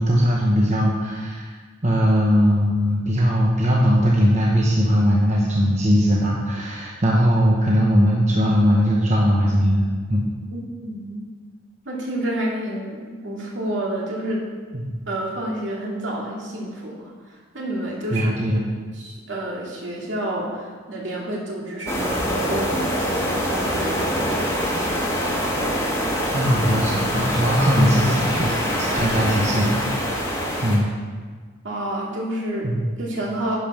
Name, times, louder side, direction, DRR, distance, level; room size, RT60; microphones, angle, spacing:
voice 1, 0.0-1.5 1.8-10.2 14.7-15.0 18.1-18.6 26.3-29.9 30.1-30.3 30.6-30.9 32.6-32.9, equal, 35° right, -3 dB, 1.0 m, -20 dB
voice 2, 10.5-11.2 11.9-14.4 15.1-18.3 18.9-24.5 31.6-32.7 33.0-33.6, right 1 dB, 65° right, -3 dB, 2.4 m, -29 dB
sound 1, 21.9-30.8, equal, 15° left, 1.6 m, -24 dB
10.5 x 5.3 x 6.1 m, 1.5 s
head